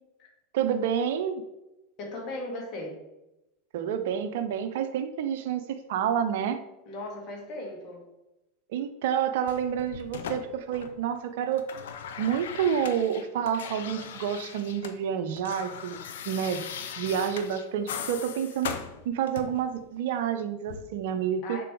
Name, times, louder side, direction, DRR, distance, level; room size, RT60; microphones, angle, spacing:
voice 1, 0.5-1.4 3.7-6.6 8.7-11.7 12.2-16.6 17.0-18.7 19.0-21.6, right 8 dB, 60° right, 9 dB, 0.6 m, -29 dB
voice 2, 2.0-3.0 6.9-8.0 21.4-21.6, left 2 dB, 40° left, -1 dB, 1.8 m, -37 dB
sound 1, 9.5-11.2 11.4-15.0 15.2-19.7 20.7-20.8, left 7 dB, 65° left, 0.6 m, -39 dB
6.8 x 3.9 x 4.7 m, 0.95 s
figure-of-eight pair, 85°, 0 cm